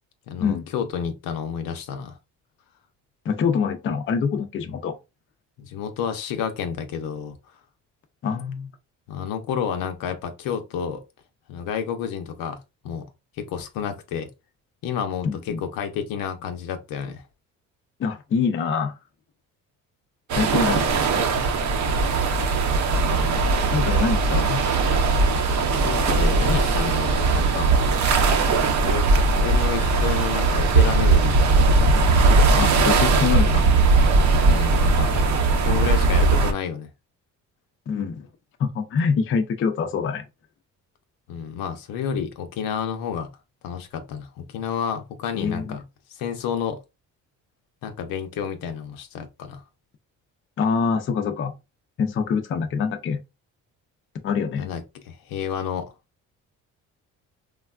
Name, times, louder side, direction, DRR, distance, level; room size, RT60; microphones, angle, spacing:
voice 1, 0.3-2.2 5.6-7.3 9.1-11.0 11.5-12.6 12.8-13.1 13.4-14.3 14.8-17.2 20.7-21.1 22.9-23.6 25.8-27.7 28.7-31.7 34.4-36.9 41.3-43.3 43.6-45.8 46.1-46.8 47.8-49.6 54.6-54.8 55.1-55.9, left 7 dB, 75° left, 0.7 m, -30 dB
voice 2, 3.3-5.0 8.2-8.7 15.2-15.6 18.0-18.9 20.4-20.8 23.6-24.6 32.5-33.7 37.9-38.3 38.6-40.2 45.3-45.8 50.6-51.5 52.0-53.2 54.2-54.7, left 6 dB, 35° left, 0.5 m, -25 dB
sound 1, 20.3-36.5, right 3 dB, 55° right, 0.7 m, -19 dB
3.3 x 2.3 x 2.3 m
cardioid pair, 95°, 34 cm